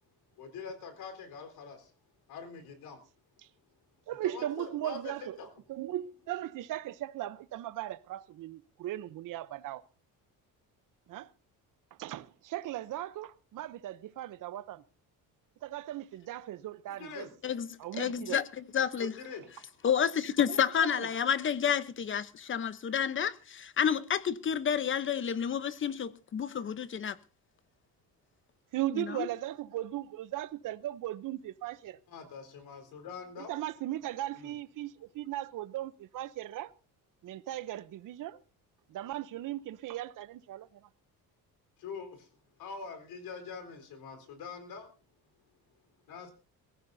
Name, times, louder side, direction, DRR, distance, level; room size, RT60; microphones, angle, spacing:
voice 1, 0.4-1.9 2.3-3.0 4.2-5.5 16.9-17.3 19.0-19.5 32.1-33.6 34.3-34.6 41.8-42.3 42.6-44.9 46.1-46.3, left 5 dB, 80° left, 4.2 m, -44 dB
voice 2, 4.1-5.3 5.7-9.8 11.1-11.3 12.0-14.8 15.6-17.3 17.8-18.4 20.8-21.1 28.7-32.0 33.4-36.7 37.2-38.4 38.9-40.7, right 14 dB, 60° right, 0.8 m, -37 dB
voice 3, 17.4-19.1 19.8-27.2 28.9-29.3, left 8 dB, 35° left, 0.9 m, -30 dB
22.5 x 15.0 x 2.7 m
cardioid pair, 135°, 36 cm